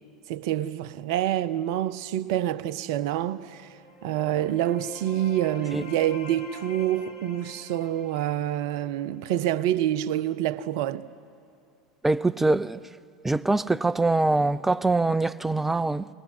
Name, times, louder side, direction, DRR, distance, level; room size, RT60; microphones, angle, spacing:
voice 1, 0.3-3.7 4.0-11.1, right 12 dB, 60° right, 0.7 m, -27 dB
sound 1, 3.5-9.1, left 2 dB, 75° left, 3.2 m, -45 dB
voice 2, 12.0-12.8 13.2-16.1, right 2 dB, 10° right, 0.5 m, -23 dB
22.0 x 20.0 x 10.0 m
hypercardioid pair, 80°, 3 cm